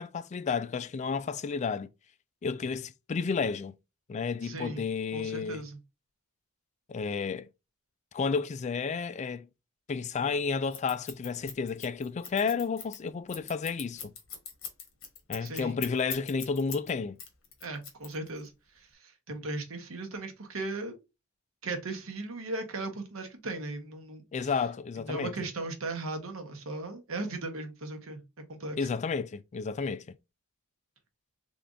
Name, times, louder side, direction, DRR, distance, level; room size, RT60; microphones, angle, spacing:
voice 1, 0.0-1.9 2.4-3.7 4.1-5.6 6.9-7.5 8.1-9.5 9.9-14.1 15.3-17.2 24.3-25.3 28.8-30.1, left 5 dB, 35° left, 0.3 m, -31 dB
voice 2, 4.4-4.8 5.1-5.8 15.4-15.8 17.6-20.9 21.6-24.5 25.0-28.2 28.5-28.9, right 2 dB, 75° right, 1.0 m, -37 dB
Scissors, 10.7-16.9 17.2-18.5, left 7 dB, 70° left, 1.2 m, -41 dB
3.6 x 3.3 x 2.5 m
head